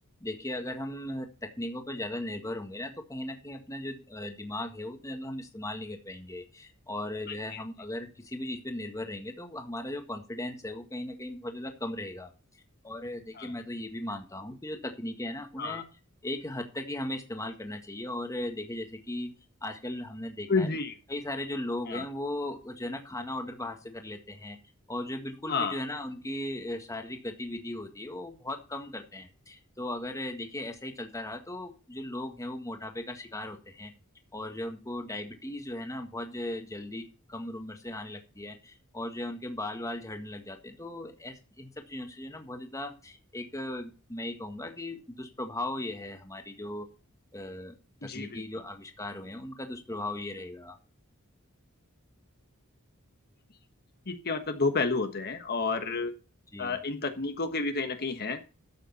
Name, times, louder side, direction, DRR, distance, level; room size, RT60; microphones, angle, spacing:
voice 1, 0.2-15.8 16.2-19.3 19.6-20.7 21.1-24.6 24.9-33.9 34.3-46.9 47.3-47.8 48.0-50.8 56.5-56.8, left 1 dB, 15° left, 5 dB, 1.7 m, -37 dB
voice 2, 20.5-20.9 21.9-22.0 25.5-25.8 48.0-48.4 54.1-56.1 56.6-58.4, left 4 dB, 45° left, 7 dB, 1.4 m, -30 dB
12.5 x 8.3 x 4.1 m, 0.34 s
head